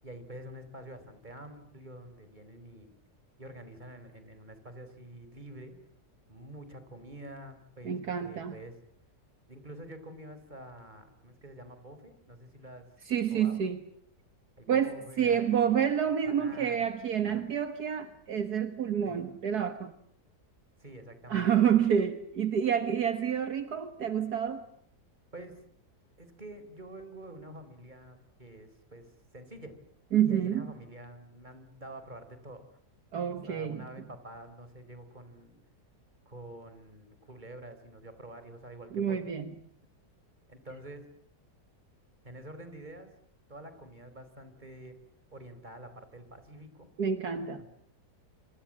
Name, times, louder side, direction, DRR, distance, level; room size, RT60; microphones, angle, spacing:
voice 1, 0.0-2.9 3.4-5.7 6.3-8.8 9.5-12.8 13.3-13.6 14.6-15.8 16.2-16.8 17.3-17.4 19.0-19.2 20.8-21.5 25.3-25.6 26.2-29.8 30.2-32.7 33.5-35.6 36.3-39.2 40.5-41.1 42.2-43.1 43.5-45.0 45.3-46.9 47.5-47.7, right 1 dB, 25° right, 10 dB, 4.4 m, -47 dB
voice 2, 7.8-8.5 13.1-13.8 14.7-19.9 21.3-24.7 30.1-30.7 33.1-33.9 38.9-39.6 47.0-47.6, right 8 dB, 65° right, 10 dB, 2.0 m, -28 dB
28.0 x 27.0 x 7.5 m, 0.64 s
omnidirectional pair, 1.8 m